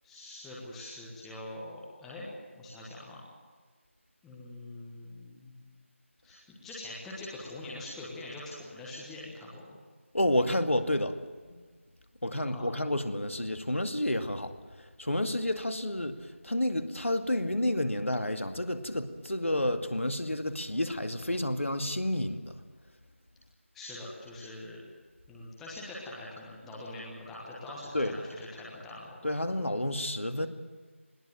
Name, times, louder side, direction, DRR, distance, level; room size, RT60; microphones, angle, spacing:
voice 1, 0.0-2.3 2.5-3.2 4.2-5.7 6.2-9.8 12.5-12.7 23.7-24.8 25.3-29.3, left 2 dB, ahead, -6 dB, 1.3 m, -43 dB
voice 2, 10.1-11.2 11.5-11.6 12.2-14.5 15.0-22.5 27.9-28.1 29.2-30.5, left 1 dB, 70° left, 7 dB, 2.2 m, -30 dB
21.0 x 17.5 x 9.1 m, 1.4 s
figure-of-eight pair, 170°, 7 cm